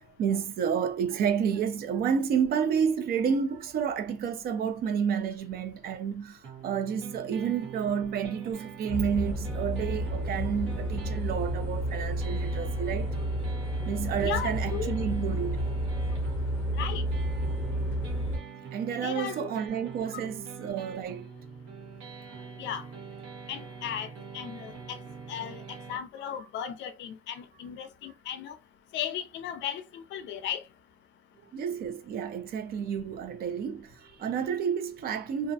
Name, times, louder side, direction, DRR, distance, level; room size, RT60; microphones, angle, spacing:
voice 1, 0.0-13.1 13.9-15.7 18.7-21.3 22.3-22.5 31.5-35.5, right 7 dB, 45° right, 0.4 m, -30 dB
sound 1, 6.4-26.0, right 6 dB, 65° right, 1.0 m, -44 dB
sound 2, 8.9-18.4, equal, 10° left, 0.8 m, -31 dB
voice 2, 14.2-14.9 16.8-17.0 19.0-19.5 22.6-22.8 23.5-24.1 24.3-25.0 25.3-25.6 25.9-28.5 28.9-30.6, left 9 dB, 60° left, 0.4 m, -35 dB
2.4 x 2.0 x 2.6 m
cardioid pair, 170°, 21 cm